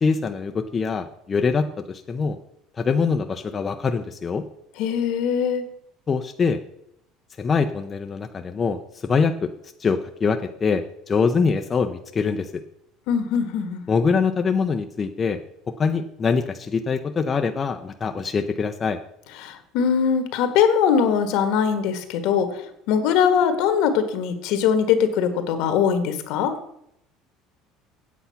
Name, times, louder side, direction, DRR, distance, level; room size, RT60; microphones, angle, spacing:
voice 1, 0.0-2.4 2.8-4.4 6.1-6.6 7.4-9.5 9.8-12.6 13.9-15.4 15.8-19.0, left 5 dB, 25° left, 5 dB, 0.6 m, -24 dB
voice 2, 4.8-5.6 13.1-13.8 19.4-22.5 22.9-26.5, left 7 dB, 70° left, 8 dB, 1.5 m, -21 dB
8.2 x 8.1 x 5.7 m, 0.75 s
cardioid pair, 135°, 0 cm